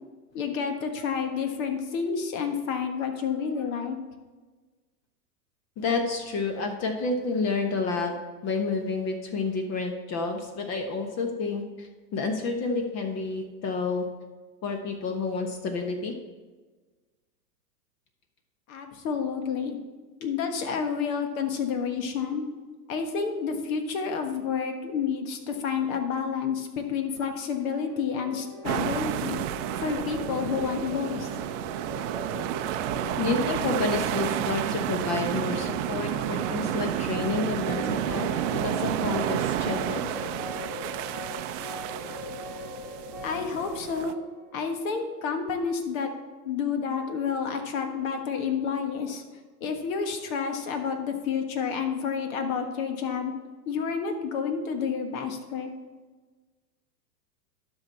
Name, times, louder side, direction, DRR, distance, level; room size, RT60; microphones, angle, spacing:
voice 1, 0.3-4.0 18.7-19.8 20.2-22.4 22.9-29.4 29.8-31.3 43.2-44.2 44.5-46.1 46.4-49.2 49.6-53.3 53.6-55.7, left 6 dB, 55° left, 6 dB, 1.5 m, -29 dB
voice 2, 5.8-8.1 8.4-14.0 14.6-16.1 33.2-38.3 38.6-40.0, left 4 dB, 30° left, 5 dB, 1.1 m, -29 dB
sound 1, 27.6-45.4, left 1 dB, 5° left, 0.3 m, -41 dB
sound 2, 28.6-44.1, right 11 dB, 50° right, 0.7 m, -31 dB
12.0 x 5.6 x 4.1 m, 1.3 s
hypercardioid pair, 115°, 48 cm